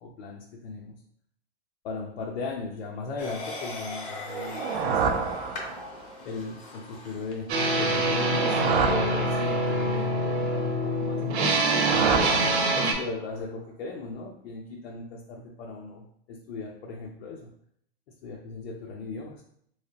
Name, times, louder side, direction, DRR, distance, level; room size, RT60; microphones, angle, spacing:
voice 1, 0.0-1.0 1.8-5.4 6.2-8.6 8.9-12.2 12.8-17.5 18.2-19.4, left 3 dB, 75° left, -1 dB, 0.6 m, -37 dB
sound 1, 3.2-7.5, left 2 dB, 25° left, 0.6 m, -39 dB
sound 2, 4.3-6.1 8.0-9.9 11.4-13.2, right 6 dB, 50° right, 0.4 m, -29 dB
sound 3, 7.5-12.9, right 1 dB, 85° right, 0.8 m, -25 dB
3.2 x 3.0 x 2.7 m, 0.67 s
hypercardioid pair, 150°, 32 cm